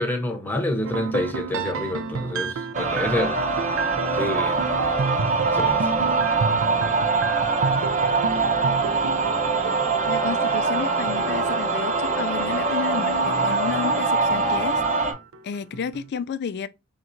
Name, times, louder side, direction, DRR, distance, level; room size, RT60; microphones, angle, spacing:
voice 1, 0.0-3.3 4.1-4.9 5.5-5.8, left 1 dB, 10° left, 0.8 m, -27 dB
sound 1, 0.8-16.1, right 5 dB, 60° right, 0.4 m, -31 dB
sound 2, 2.7-15.1, right 4 dB, 35° right, 0.9 m, -23 dB
voice 2, 10.1-15.1 15.4-16.7, left 6 dB, 50° left, 0.3 m, -32 dB
4.3 x 3.6 x 2.6 m
head